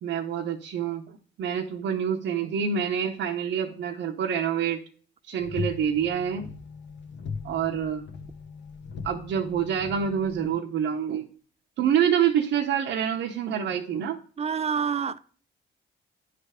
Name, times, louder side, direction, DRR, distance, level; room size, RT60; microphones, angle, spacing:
voice 1, 0.0-4.8 5.3-6.5 7.4-8.0 9.0-11.3 11.8-14.2, right 8 dB, 70° right, 0.8 m, -27 dB
sound 1, 5.4-10.5, left 5 dB, 65° left, 0.9 m, -39 dB
voice 2, 14.4-15.2, right 6 dB, 30° right, 0.5 m, -27 dB
9.5 x 3.3 x 4.8 m
cardioid pair, 90°, 20 cm